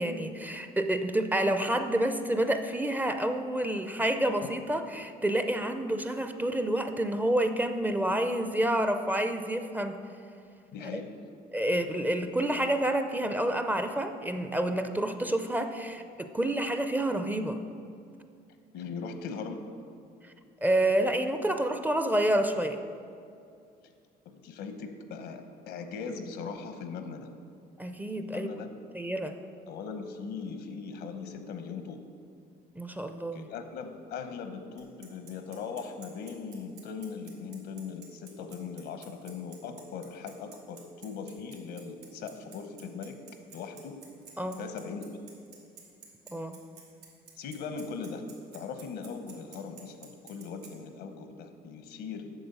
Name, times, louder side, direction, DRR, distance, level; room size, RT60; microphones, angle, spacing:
voice 1, 0.0-9.9 10.9-11.0 11.5-17.6 20.6-22.8 27.8-28.5 28.9-29.4 32.8-33.5 44.4-44.6 46.3-46.6, right 1 dB, 10° right, 8 dB, 0.4 m, -28 dB
voice 2, 10.7-11.1 18.7-19.6 23.8-23.9 24.2-27.3 28.2-28.7 29.7-32.0 33.3-43.2 43.5-43.9 44.6-45.1 47.4-48.2 48.5-52.3, left 5 dB, 80° left, 7 dB, 0.9 m, -39 dB
Bicycle, 34.8-50.7, right 6 dB, 90° right, 2.1 m, -51 dB
8.0 x 6.6 x 5.4 m, 2.4 s
cardioid pair, 110°, 17 cm